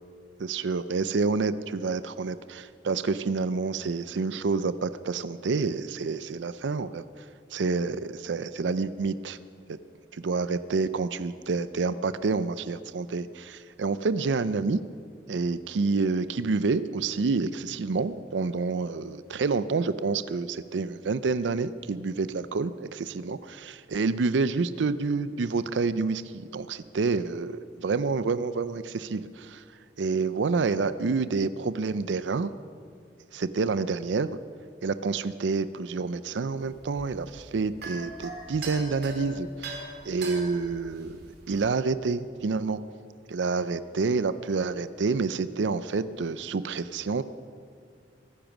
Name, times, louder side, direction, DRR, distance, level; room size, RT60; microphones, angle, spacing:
voice 1, 0.4-7.3 7.5-9.4 10.1-14.8 15.3-29.6 30.0-32.5 33.3-34.3 34.8-39.8 40.1-41.2 41.5-42.8 43.3-47.2, right 4 dB, 80° right, 14 dB, 0.5 m, -28 dB
sound 1, 36.6-41.7, right 2 dB, 60° right, 3.1 m, -40 dB
23.0 x 10.0 x 6.1 m, 2.2 s
head